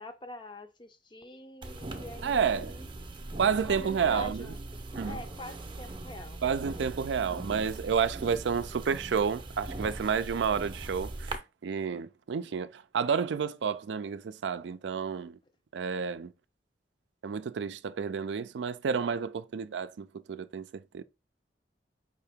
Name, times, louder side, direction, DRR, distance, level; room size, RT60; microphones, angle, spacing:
voice 1, 0.0-2.9 3.6-4.6 5.0-6.4, left 1 dB, 25° left, 0.5 m, -44 dB
sound 1, 1.6-11.4, right 2 dB, 30° right, 0.6 m, -41 dB
voice 2, 2.2-2.7 3.4-4.5 5.0-5.2 6.4-15.4 15.7-16.3 17.2-21.0, right 6 dB, 80° right, 0.4 m, -30 dB
4.9 x 2.8 x 3.4 m
head